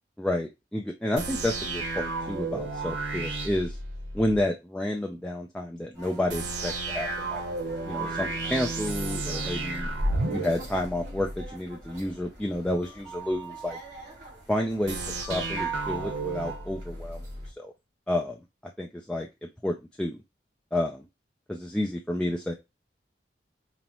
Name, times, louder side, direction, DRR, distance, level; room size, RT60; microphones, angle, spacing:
voice 1, 0.2-3.8 4.1-7.4 7.9-9.9 10.3-13.8 14.5-15.0 15.3-17.2 17.6-17.7 18.1-18.4 18.8-19.3 19.6-20.2 20.7-21.1 21.5-22.5, left 1 dB, 5° left, 0 dB, 0.4 m, -30 dB
sound 1, 1.2-4.4 6.3-11.5 14.9-17.5, right 2 dB, 85° right, 0.9 m, -32 dB
sound 2, 5.9-17.5, right 4 dB, 60° right, 2.7 m, -44 dB
5.3 x 2.0 x 2.9 m, 0.22 s
head